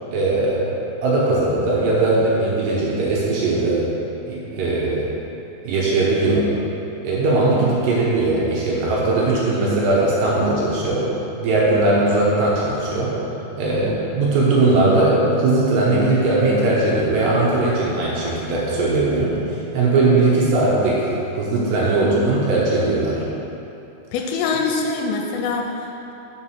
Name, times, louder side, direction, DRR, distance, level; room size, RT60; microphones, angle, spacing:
voice 1, 0.1-0.6 1.0-3.8 4.3-5.0 5.6-6.4 7.0-11.1 11.4-13.1 13.6-19.3 19.7-23.2, right 2 dB, 70° right, -6 dB, 2.7 m, -19 dB
voice 2, 24.1-26.1, left 4 dB, 90° left, 2 dB, 3.1 m, -24 dB
6.9 x 4.8 x 5.6 m, 3.0 s
omnidirectional pair, 5.6 m